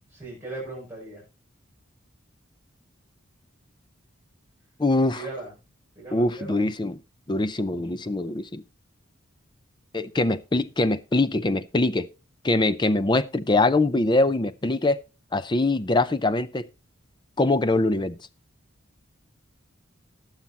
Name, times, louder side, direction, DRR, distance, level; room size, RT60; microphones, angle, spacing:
voice 1, 0.1-1.2 5.1-5.5 5.9-6.6, right 2 dB, 10° right, 6.8 m, -38 dB
voice 2, 4.8-5.3 6.1-7.0 7.3-8.6 9.9-12.1 12.4-15.0 15.3-16.7 17.4-18.2, left 2 dB, 20° left, 0.5 m, -23 dB
19.5 x 7.3 x 2.9 m
head